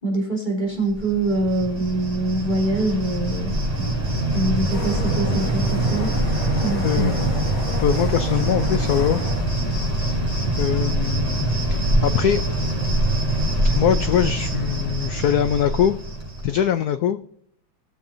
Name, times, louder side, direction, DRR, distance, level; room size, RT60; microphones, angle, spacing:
voice 1, 0.0-3.9 4.3-6.1 6.6-7.2, right 2 dB, 20° left, -3 dB, 3.0 m, -24 dB
Cricket, 0.9-16.6, right 1 dB, 20° right, 4.6 m, -24 dB
sound 1, 4.7-9.5, left 1 dB, 55° left, 4.3 m, -31 dB
voice 2, 6.8-7.2 7.8-9.2 10.0-10.1 10.6-12.4 13.7-16.0 16.4-17.2, left 10 dB, 85° left, 11 dB, 0.8 m, -22 dB
17.5 x 7.2 x 2.6 m, 0.69 s
omnidirectional pair, 2.2 m